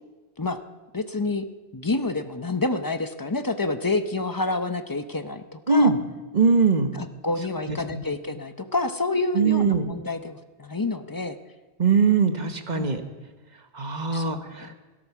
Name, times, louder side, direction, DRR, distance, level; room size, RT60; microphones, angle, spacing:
voice 1, 0.9-1.4 1.7-5.9 6.9-11.4 12.7-12.9 14.1-14.7, left 2 dB, 25° left, 9 dB, 0.6 m, -28 dB
voice 2, 5.7-6.0 6.3-6.9 7.9-8.0 9.3-9.9 11.8-13.0 13.7-14.7, right 5 dB, 40° right, 6 dB, 1.3 m, -21 dB
16.5 x 13.0 x 6.0 m, 1.2 s
omnidirectional pair, 1.1 m